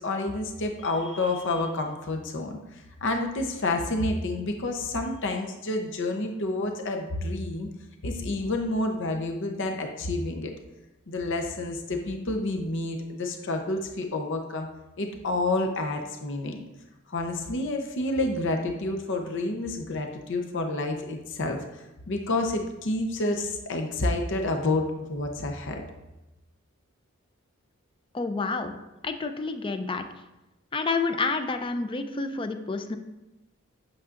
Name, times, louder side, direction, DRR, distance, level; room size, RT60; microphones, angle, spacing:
voice 1, 0.0-2.6 3.0-7.7 8.0-10.5 11.1-14.7 15.0-16.6 17.1-25.8, left 2 dB, 60° left, 3 dB, 0.8 m, -29 dB
voice 2, 28.1-28.7 29.0-30.1 30.7-33.0, left 4 dB, 25° left, 8 dB, 0.5 m, -29 dB
8.4 x 6.4 x 2.5 m, 0.98 s
head